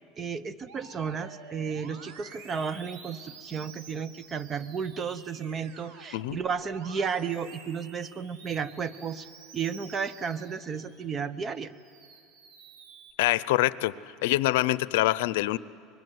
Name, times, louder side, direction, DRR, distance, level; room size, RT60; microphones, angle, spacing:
voice 1, 0.2-9.3 9.5-11.7, right 6 dB, 25° right, 14 dB, 0.9 m, -33 dB
Musical instrument, 0.7-11.1 11.5-13.1, right 5 dB, 75° right, 2.6 m, -50 dB
voice 2, 13.2-13.9 14.2-15.6, left 17 dB, 85° left, 18 dB, 0.6 m, -25 dB
25.0 x 21.0 x 9.4 m, 2.6 s
supercardioid pair, 130°, 0 cm